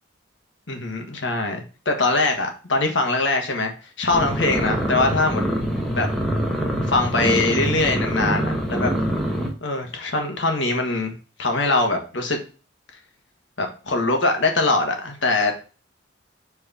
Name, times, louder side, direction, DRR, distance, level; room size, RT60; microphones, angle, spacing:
voice 1, 0.7-3.7 4.0-5.4 6.0-6.1 6.9-8.9 9.6-11.1 11.4-12.4 13.6-15.6, left 2 dB, 70° left, 4 dB, 1.5 m, -22 dB
sound 1, 4.1-9.5, equal, ahead, 1.1 m, -24 dB
4.7 x 4.3 x 5.5 m, 0.35 s
head